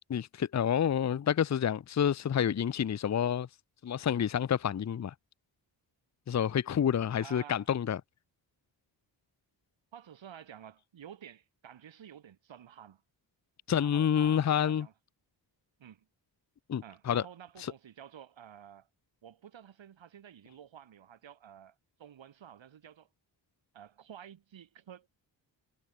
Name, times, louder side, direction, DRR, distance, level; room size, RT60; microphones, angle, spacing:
voice 1, 0.1-3.5 3.8-5.1 6.3-8.0 13.7-14.9 16.7-17.2 17.6-17.7, left 8 dB, 35° left, 0.7 m, -28 dB
voice 2, 7.2-7.7 9.9-13.0 13.8-14.9 15.8-16.0 16.8-18.9 19.2-23.1 23.7-25.1, right 9 dB, 75° right, 2.7 m, -51 dB
cardioid pair, 60°, 46 cm